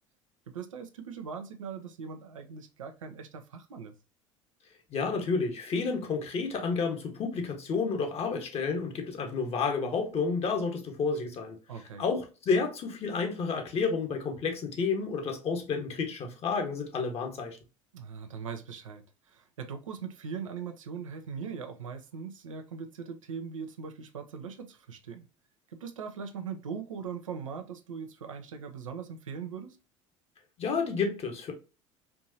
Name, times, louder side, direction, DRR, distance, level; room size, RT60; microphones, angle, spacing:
voice 1, 0.5-3.9 11.7-12.0 17.9-25.3 25.7-29.8, right 6 dB, 80° right, 0.6 m, -40 dB
voice 2, 4.9-11.6 12.0-17.6 30.6-31.5, left 4 dB, 40° left, 1.3 m, -30 dB
4.5 x 2.6 x 2.7 m
figure-of-eight pair, 70°, 17 cm